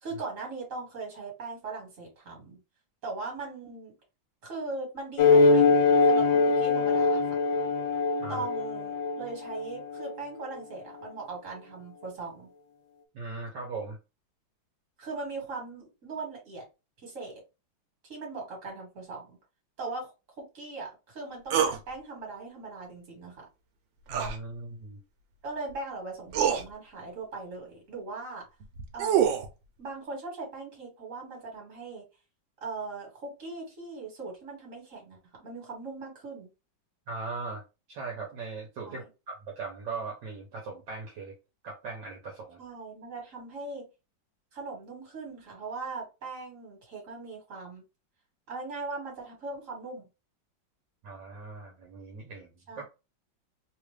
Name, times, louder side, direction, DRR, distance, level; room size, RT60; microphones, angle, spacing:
voice 1, 0.0-2.6 3.0-3.9 4.4-5.8 6.1-7.3 8.3-12.5 15.0-16.6 17.0-17.4 18.0-19.4 19.8-23.5 25.4-28.4 28.9-29.4 29.8-32.0 32.6-36.5 38.8-39.0 42.6-43.9 44.5-47.8 48.5-50.1 52.7-52.8, right 3 dB, 45° right, 1.8 m, -39 dB
sound 1, 5.2-10.1, left 4 dB, 80° left, 1.2 m, -23 dB
voice 2, 13.1-14.0 24.1-25.0 37.1-37.6 37.9-41.3 41.6-42.6 51.0-52.8, right 4 dB, 70° right, 1.4 m, -39 dB
sound 2, 21.5-21.8 24.1-24.4 25.7-25.8 26.3-26.6 28.6-29.5, right 8 dB, 90° right, 1.4 m, -25 dB
3.3 x 2.4 x 3.1 m
omnidirectional pair, 2.0 m